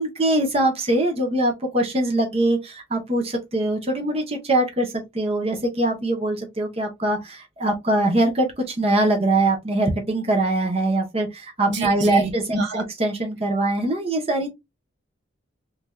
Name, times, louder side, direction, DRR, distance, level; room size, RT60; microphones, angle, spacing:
voice 1, 0.0-14.5, right 1 dB, 30° right, 0.7 m, -23 dB
voice 2, 11.7-12.8, right 2 dB, 60° right, 0.8 m, -26 dB
3.1 x 2.4 x 2.2 m
head